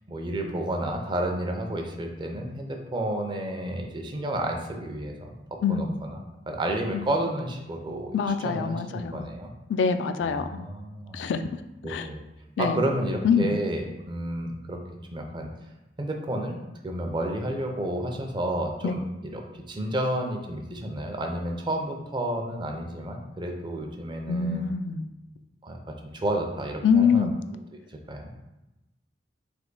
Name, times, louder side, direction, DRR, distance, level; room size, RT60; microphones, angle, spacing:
voice 1, 0.1-6.2 6.5-8.2 8.4-9.5 10.2-11.2 11.8-12.2 12.6-14.8 15.1-15.5 16.0-24.7 25.6-27.3 28.1-28.3, right 1 dB, 25° right, 3 dB, 0.5 m, -31 dB
voice 2, 8.1-9.3 9.7-10.5 11.1-11.4 11.8-12.1 12.6-12.8 13.2-13.5 18.8-18.9 24.3-25.1 26.8-27.3, left 6 dB, 85° left, 9 dB, 0.3 m, -24 dB
3.4 x 3.0 x 3.9 m, 1.0 s
head